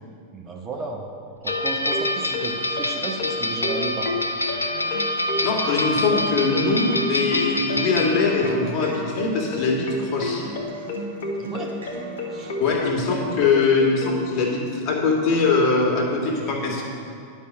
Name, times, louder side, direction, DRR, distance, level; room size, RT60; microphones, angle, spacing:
voice 1, 0.3-1.1 1.4-4.3 11.4-11.8 12.3-12.6, right 3 dB, 25° right, 1 dB, 1.0 m, -33 dB
sound 1, 1.5-8.6, left 1 dB, 80° left, 0.6 m, -26 dB
sound 2, 1.5-14.2, left 3 dB, 50° left, 1.2 m, -30 dB
Acoustic guitar, 4.7-12.7, right 2 dB, 75° right, 1.8 m, -38 dB
voice 2, 5.4-10.4 12.6-16.8, left 4 dB, 35° left, -1 dB, 2.0 m, -22 dB
10.5 x 5.5 x 7.3 m, 2.5 s
figure-of-eight pair, 90°, 0 cm